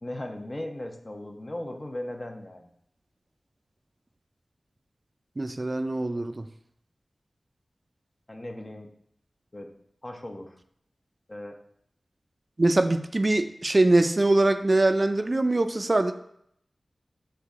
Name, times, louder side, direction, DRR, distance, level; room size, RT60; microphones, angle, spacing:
voice 1, 0.0-2.7 8.3-8.9 9.5-9.7 10.0-10.6 11.3-11.6, left 1 dB, 35° left, 3 dB, 0.7 m, -37 dB
voice 2, 5.4-6.5 12.6-16.1, right 2 dB, 45° right, 8 dB, 0.3 m, -23 dB
6.5 x 2.2 x 3.6 m, 0.71 s
cardioid pair, 45°, 0 cm